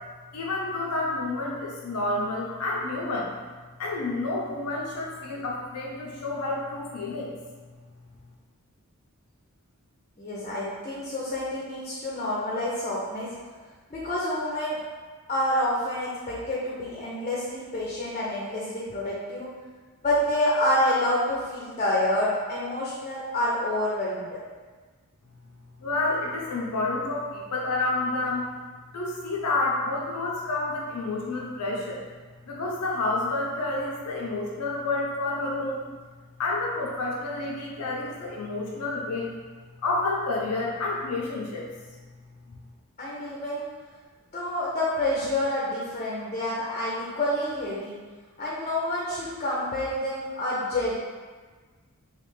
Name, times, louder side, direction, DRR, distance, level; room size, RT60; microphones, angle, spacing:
voice 1, 0.3-3.3 3.8-7.3 25.8-28.4 28.9-32.0 32.5-35.9 36.4-39.3 39.8-41.7 42.5-42.6, left 2 dB, 80° left, -3 dB, 0.6 m, -29 dB
voice 2, 10.2-13.4 13.9-14.8 15.3-19.5 20.0-24.4 43.0-43.6 44.3-48.0 48.4-50.9, left 1 dB, 30° left, -6 dB, 0.6 m, -28 dB
3.3 x 2.9 x 3.2 m, 1.4 s
head